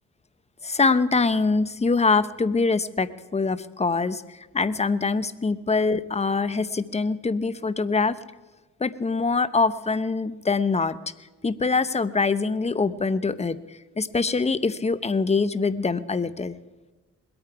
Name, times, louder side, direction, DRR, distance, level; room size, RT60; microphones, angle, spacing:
voice 1, 0.6-8.2 8.8-11.0 11.4-16.6, left 4 dB, 20° left, 14 dB, 0.8 m, -24 dB
21.5 x 8.8 x 4.7 m, 1.2 s
cardioid pair, 65°, 31 cm